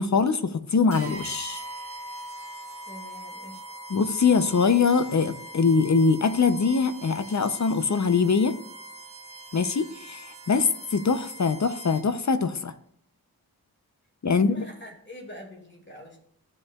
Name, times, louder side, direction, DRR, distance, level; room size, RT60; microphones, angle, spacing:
voice 1, 0.0-1.6 3.9-8.5 9.5-12.7 14.2-14.5, left 5 dB, 50° left, 11 dB, 0.7 m, -23 dB
sound 1, 0.9-12.3, right 1 dB, 35° right, 1.9 m, -42 dB
voice 2, 2.8-3.6 14.3-16.2, equal, 30° left, 0 dB, 2.2 m, -44 dB
15.5 x 5.3 x 2.4 m, 0.68 s
cardioid pair, 50°, 38 cm